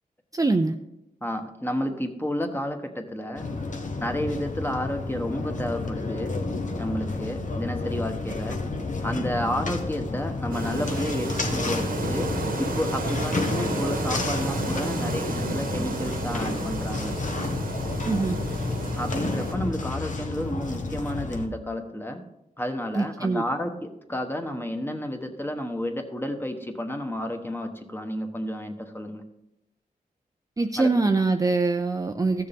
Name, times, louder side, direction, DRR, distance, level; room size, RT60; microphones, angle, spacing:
voice 1, 0.3-0.8 18.0-18.4 22.9-23.4 30.6-32.5, right 3 dB, 25° right, 6 dB, 0.5 m, -23 dB
voice 2, 1.2-3.4 4.0-6.3 6.8-8.6 9.0-12.3 12.6-17.1 18.9-22.2 22.6-29.2 30.8-30.9, equal, 15° left, 5 dB, 1.2 m, -31 dB
sound 1, 3.4-21.5, left 3 dB, 55° left, 1.2 m, -31 dB
sound 2, 10.5-19.5, right 3 dB, 70° right, 1.2 m, -32 dB
14.0 x 6.6 x 3.6 m, 0.86 s
cardioid pair, 70°, 15 cm